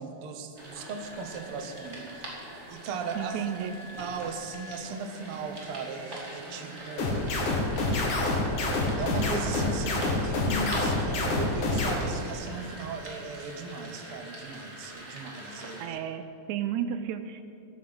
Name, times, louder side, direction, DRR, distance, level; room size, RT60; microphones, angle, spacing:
voice 1, 0.0-2.3 2.7-3.4 3.9-7.5 9.0-16.0, right 4 dB, 60° right, 6 dB, 1.7 m, -37 dB
sound 1, 0.6-15.9, right 1 dB, 20° right, 3.0 m, -43 dB
voice 2, 3.2-3.8 15.8-17.4, right 9 dB, 80° right, 10 dB, 2.0 m, -32 dB
sound 2, 7.0-11.9, left 2 dB, 85° left, 3.4 m, -27 dB
13.5 x 10.0 x 7.8 m, 2.6 s
omnidirectional pair, 3.4 m